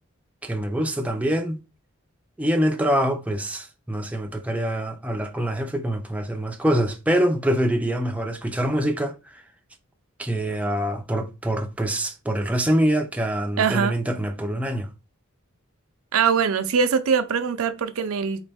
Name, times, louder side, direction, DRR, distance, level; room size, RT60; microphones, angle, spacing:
voice 1, 0.4-1.6 2.4-9.4 10.2-14.9, equal, 5° right, 0.4 m, -25 dB
voice 2, 13.6-14.0 16.1-18.5, right 6 dB, 75° right, 0.5 m, -22 dB
4.0 x 3.1 x 3.4 m
head